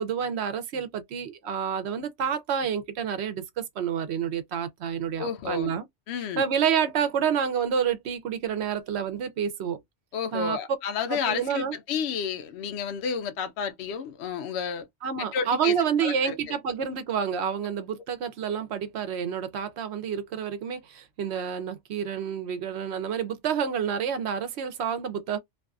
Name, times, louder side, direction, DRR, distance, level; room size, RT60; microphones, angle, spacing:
voice 1, 0.0-5.9 6.4-9.8 10.3-10.6 11.1-11.8 15.0-25.4, right 7 dB, 65° right, 0.8 m, -29 dB
voice 2, 5.2-5.7 6.1-6.4 10.1-14.9 15.3-15.7 16.0-16.3, left 7 dB, 70° left, 0.8 m, -31 dB
2.5 x 2.3 x 2.3 m
omnidirectional pair, 1.3 m